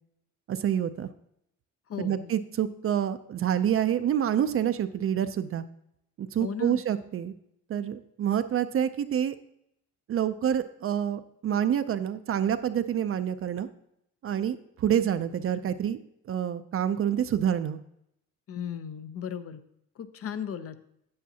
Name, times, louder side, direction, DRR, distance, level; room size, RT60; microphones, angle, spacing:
voice 1, 0.5-1.1 2.0-5.6 6.2-7.3 7.7-9.4 10.1-13.7 14.2-16.0 16.3-17.8, right 9 dB, 45° right, 11 dB, 0.5 m, -27 dB
voice 2, 1.9-2.3 6.4-6.8 18.5-19.6 20.0-20.8, left 8 dB, 50° left, 12 dB, 0.7 m, -36 dB
8.6 x 8.2 x 2.8 m, 0.76 s
cardioid pair, 90°, 30 cm